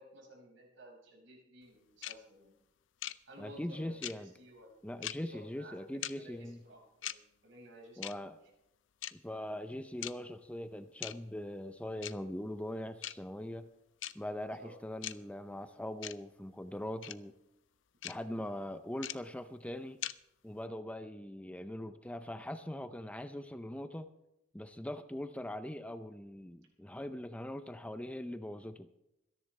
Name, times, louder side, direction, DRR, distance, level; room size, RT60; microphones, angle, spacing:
voice 1, 0.0-2.6 3.3-4.9 5.2-8.1 14.4-14.7 18.0-18.5, equal, 75° right, 5.2 m, -55 dB
sound 1, 2.0-2.1 3.0-3.1 4.0-4.1 5.0-5.1 6.0-6.1 7.0-7.1 8.0-8.1 9.0-9.1 10.0-10.1 11.0-11.1 12.0-12.1 13.0-13.1 14.0-14.1 15.0-15.1 16.0-16.1 17.0-17.1 18.0-18.1 19.0-19.1 20.0-20.1, left 13 dB, 75° left, 0.5 m, -39 dB
voice 2, 3.4-4.3 4.8-6.6 8.0-8.4 9.2-13.7 14.1-17.3 18.0-20.0 20.4-24.1 24.5-28.9, left 1 dB, 5° left, 0.5 m, -41 dB
26.0 x 10.5 x 3.3 m
head